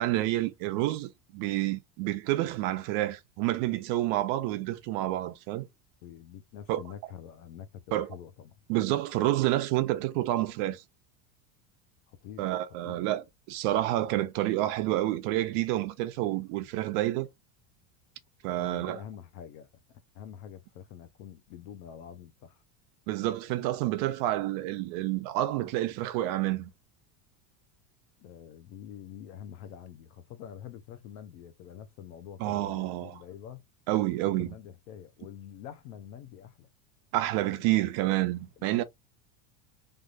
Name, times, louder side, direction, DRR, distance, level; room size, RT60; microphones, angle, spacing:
voice 1, 0.0-5.7 6.7-6.8 7.9-8.2 8.7-10.8 12.4-17.3 18.4-19.0 23.1-26.7 32.4-33.1 33.9-34.5 37.1-38.8, right 15 dB, 50° right, 0.6 m, -29 dB
voice 2, 6.0-8.5 12.1-12.5 12.8-13.0 18.6-19.7 20.1-22.6 28.2-33.6 34.2-36.7 37.7-37.8 38.6-38.8, left 9 dB, 70° left, 0.9 m, -46 dB
3.4 x 2.6 x 2.5 m
supercardioid pair, 155°, 46 cm